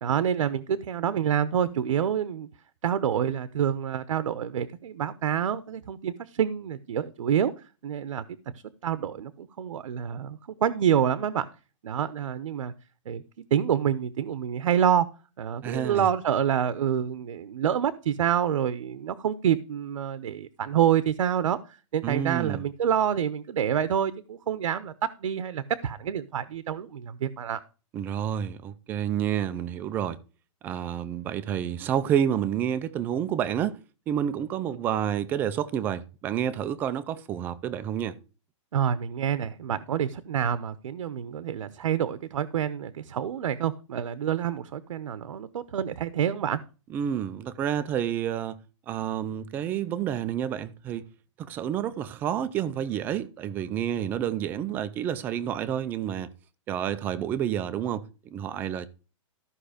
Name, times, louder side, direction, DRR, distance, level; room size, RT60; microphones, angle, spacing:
voice 1, 0.0-2.5 2.8-7.5 7.8-8.5 8.8-11.4 11.8-12.7 13.1-13.2 13.5-15.1 15.4-21.6 21.9-24.9 25.2-27.6 38.7-46.6, right 9 dB, 80° right, 0.9 m, -27 dB
voice 2, 15.6-16.1 22.0-22.6 27.9-30.2 30.6-33.8 34.1-38.2 46.9-48.6 48.9-51.0 51.4-56.3 56.7-58.9, right 9 dB, 10° right, 0.4 m, -29 dB
14.0 x 5.7 x 5.0 m
hypercardioid pair, 170°, 17 cm